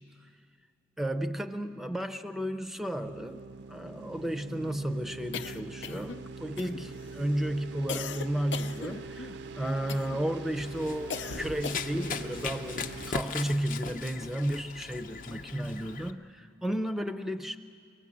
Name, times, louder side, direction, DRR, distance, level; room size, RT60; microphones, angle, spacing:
voice 1, 1.0-17.6, right 1 dB, ahead, 8 dB, 0.5 m, -33 dB
sound 1, 3.0-13.1, right 4 dB, 75° right, 0.5 m, -43 dB
sound 2, 5.3-6.2 6.6-7.1 7.9-9.4 9.9-10.3 11.1-12.1, left 5 dB, 85° left, 0.6 m, -39 dB
Run, 10.6-16.1, left 5 dB, 45° left, 0.7 m, -39 dB
23.0 x 18.0 x 8.5 m, 2.3 s
head